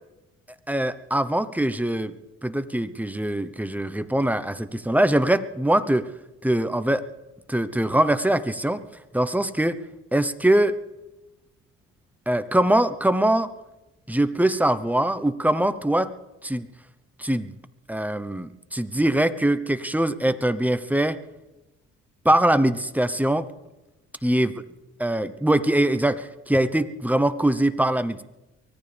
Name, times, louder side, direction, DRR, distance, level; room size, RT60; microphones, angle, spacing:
voice 1, 0.7-2.1 2.4-6.0 6.4-7.0 7.5-8.8 9.1-9.8 10.1-10.8 12.3-13.5 14.1-16.1 16.4-16.7 17.2-17.6 17.9-21.2 22.2-23.5 24.2-24.5 25.0-28.2, right 1 dB, 5° right, 12 dB, 0.9 m, -22 dB
24.0 x 17.0 x 3.5 m, 1.0 s
cardioid pair, 90°, 30 cm